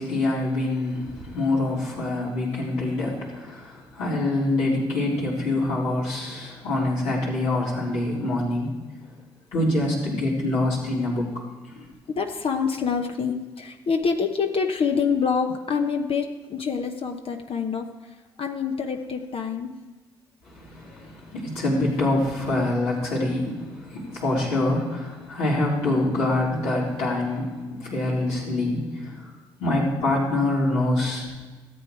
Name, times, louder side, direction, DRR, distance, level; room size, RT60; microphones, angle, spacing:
voice 1, 0.0-8.8 9.5-11.3 11.7-11.9 20.5-29.2 29.6-31.3, left 2 dB, 80° left, -7 dB, 3.8 m, -25 dB
voice 2, 12.2-17.9 18.4-19.7, left 5 dB, 55° left, 4 dB, 0.9 m, -26 dB
14.0 x 8.0 x 4.7 m, 1.3 s
hypercardioid pair, 45°, 12 cm